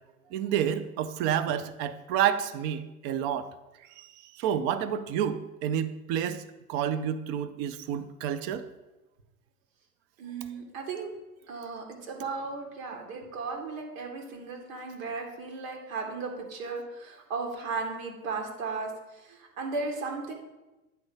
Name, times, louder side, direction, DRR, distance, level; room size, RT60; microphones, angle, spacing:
voice 1, 0.3-3.5 4.0-4.1 4.4-6.4 6.7-8.7, right 9 dB, 30° right, 13 dB, 0.3 m, -29 dB
voice 2, 10.2-11.1 11.5-20.3, right 4 dB, 60° right, 2 dB, 2.0 m, -36 dB
9.0 x 3.9 x 5.5 m, 1.1 s
hypercardioid pair, 110°, 44 cm